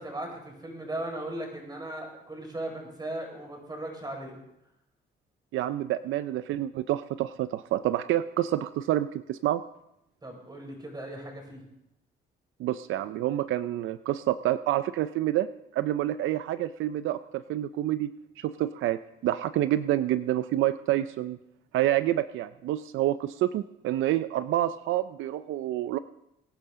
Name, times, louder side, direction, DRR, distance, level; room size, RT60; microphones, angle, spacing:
voice 1, 0.0-4.4 10.2-11.6, right 1 dB, 20° right, 1 dB, 5.0 m, -37 dB
voice 2, 5.5-9.6 12.6-15.5 15.7-18.1 18.4-21.4 21.7-26.0, right 13 dB, 80° right, 13 dB, 0.5 m, -28 dB
23.0 x 9.9 x 3.7 m, 0.84 s
cardioid pair, 90°, 20 cm